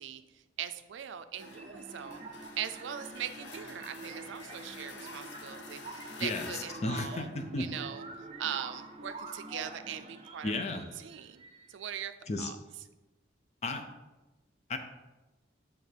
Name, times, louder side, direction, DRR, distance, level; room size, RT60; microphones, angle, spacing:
voice 1, 0.0-2.2 2.6-7.3 7.6-11.4 11.7-12.6, right 9 dB, 90° right, 11 dB, 0.4 m, -41 dB
sound 1, 1.3-8.1, left 4 dB, 75° left, 0.6 m, -49 dB
sound 2, 1.4-12.0, right 3 dB, 30° right, 0.4 m, -47 dB
voice 2, 6.8-7.7 10.4-10.8 12.3-12.5 13.6-13.9 14.7-14.8, left 2 dB, 35° left, 7 dB, 0.5 m, -33 dB
8.7 x 3.4 x 3.4 m, 1.1 s
head